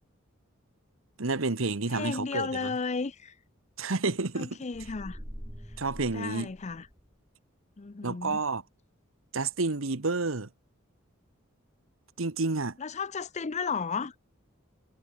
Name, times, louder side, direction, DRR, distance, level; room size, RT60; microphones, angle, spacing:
voice 1, 1.2-2.7 3.8-4.6 5.8-6.5 8.0-8.6 9.3-10.5 12.2-12.8, right 3 dB, 85° right, 1.4 m, -30 dB
voice 2, 1.9-3.3 4.4-5.2 6.1-6.9 7.8-8.4 12.8-14.1, left 5 dB, 35° left, 0.6 m, -34 dB
sound 1, 4.7-7.1, equal, 5° right, 5.1 m, -44 dB
head